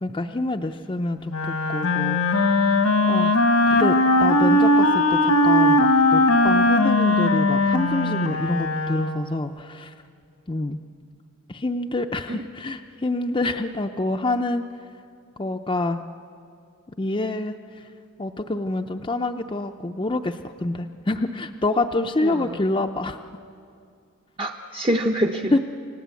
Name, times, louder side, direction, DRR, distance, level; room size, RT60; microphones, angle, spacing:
voice 1, 0.0-1.3 1.7-2.5 3.1-9.9 10.5-10.8 11.5-14.6 15.4-16.0 17.0-17.6 18.2-23.2 25.5-25.6, left 2 dB, 25° left, 4 dB, 0.5 m, -27 dB
Wind instrument woodwind instrument, 1.3-9.4, left 1 dB, 90° left, 1.7 m, -19 dB
voice 2, 22.2-22.6 24.4-25.6, equal, 25° right, 3 dB, 0.7 m, -25 dB
29.0 x 18.0 x 8.3 m, 2.4 s
head